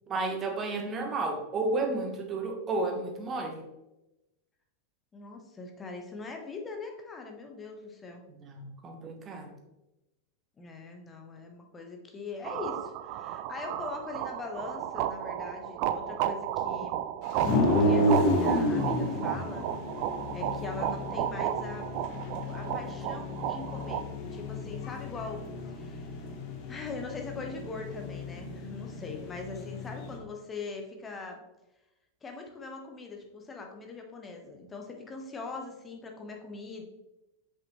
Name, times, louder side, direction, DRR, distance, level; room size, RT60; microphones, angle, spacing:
voice 1, 0.1-3.6 8.3-9.5, right 3 dB, 25° right, 3 dB, 1.1 m, -32 dB
voice 2, 5.1-8.2 10.6-17.0 17.8-19.7 20.3-21.9 22.5-24.0 24.3-26.2 26.7-31.4 32.2-36.8, left 4 dB, 20° left, 2 dB, 1.1 m, -41 dB
sound 1, 12.4-24.0, right 11 dB, 45° right, 0.3 m, -33 dB
sound 2, 17.4-30.2, left 1 dB, 45° left, 0.9 m, -31 dB
6.2 x 5.2 x 3.1 m, 0.98 s
figure-of-eight pair, 90°, 0 cm